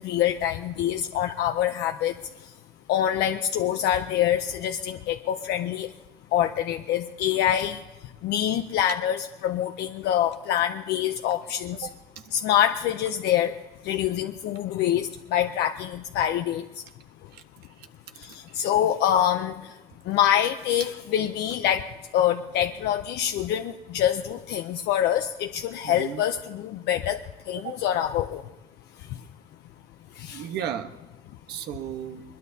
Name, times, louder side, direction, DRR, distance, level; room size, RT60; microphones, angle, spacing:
voice 1, 0.0-2.1 2.9-5.9 6.3-7.8 8.2-11.9 12.3-13.5 13.9-16.6 18.2-19.5 20.1-21.9 22.1-27.2 27.5-28.4 30.2-30.4, left 10 dB, 80° left, 6 dB, 0.6 m, -25 dB
voice 2, 18.2-18.6 25.8-26.2 27.5-27.7 30.3-30.9 31.5-32.2, right 10 dB, 80° right, 7 dB, 1.2 m, -35 dB
22.5 x 21.5 x 2.8 m, 1.1 s
cardioid pair, 110°, 17 cm